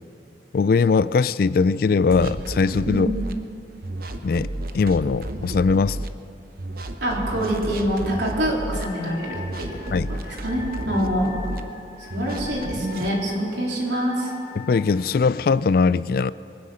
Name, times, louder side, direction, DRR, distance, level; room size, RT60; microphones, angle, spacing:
voice 1, 0.5-3.1 4.2-4.5 4.7-6.0 9.9-10.1 14.5-16.3, left 4 dB, 55° left, 18 dB, 0.3 m, -20 dB
sound 1, 2.1-3.3 3.8-6.1 6.6-8.8 9.3-11.6 12.1-13.1, right 1 dB, 50° right, 0.8 m, -32 dB
voice 2, 7.0-11.4 12.0-14.3, equal, 75° right, -3 dB, 3.7 m, -26 dB
Wind instrument woodwind instrument, 8.7-15.0, left 6 dB, 40° left, 3.3 m, -42 dB
23.0 x 9.8 x 6.4 m, 2.9 s
head